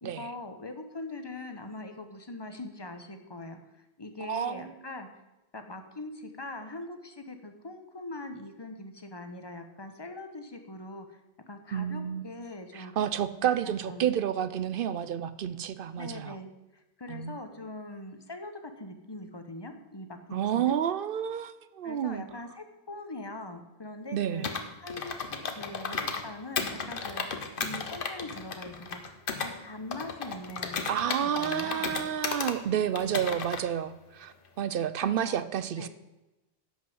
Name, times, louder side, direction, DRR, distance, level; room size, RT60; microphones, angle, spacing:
voice 1, 0.0-5.1 5.5-11.2 11.5-12.9 13.6-14.1 16.0-16.5 16.7-20.7 21.8-24.5 24.8-25.3 25.6-27.3 27.6-32.0 35.0-35.4 35.8-35.9, left 2 dB, 25° left, 7 dB, 0.9 m, -42 dB
voice 2, 4.2-4.7 11.7-12.2 12.7-16.4 17.1-17.3 20.3-22.2 24.1-24.5 30.9-35.9, right 9 dB, 60° right, 14 dB, 0.6 m, -30 dB
Computer keyboard, 24.4-26.2 26.6-29.5 29.9-32.6 33.0-33.6, left 5 dB, 50° left, 1.1 m, -34 dB
11.0 x 5.5 x 7.8 m, 1.0 s
omnidirectional pair, 1.2 m